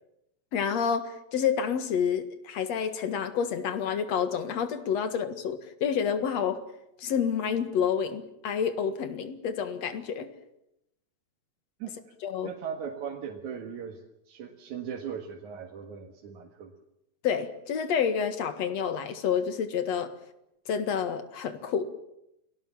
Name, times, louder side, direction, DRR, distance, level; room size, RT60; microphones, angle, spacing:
voice 1, 0.5-6.6 7.0-10.3 12.2-12.5 17.2-20.1 20.7-21.9, left 7 dB, 65° left, 10 dB, 2.8 m, -29 dB
voice 2, 11.8-12.1 12.4-16.7, right 7 dB, 80° right, 2 dB, 3.2 m, -39 dB
29.0 x 19.0 x 7.3 m, 0.83 s
omnidirectional pair, 3.3 m